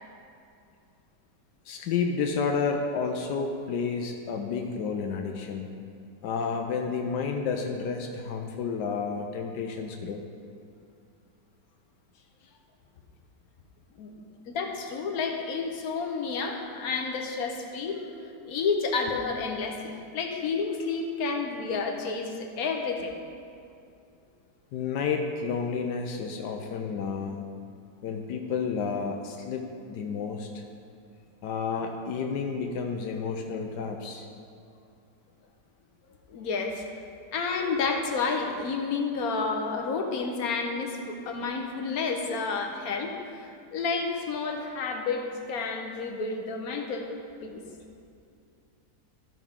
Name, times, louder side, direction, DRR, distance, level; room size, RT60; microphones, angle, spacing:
voice 1, 1.7-5.7 6.2-10.2 24.7-27.4 28.0-30.6 31.4-34.3, left 5 dB, 80° left, 3 dB, 1.3 m, -31 dB
voice 2, 14.5-23.1 36.3-36.8 37.3-47.1 47.4-47.6, left 4 dB, 65° left, 3 dB, 1.3 m, -30 dB
13.5 x 6.0 x 3.6 m, 2.5 s
omnidirectional pair, 1.8 m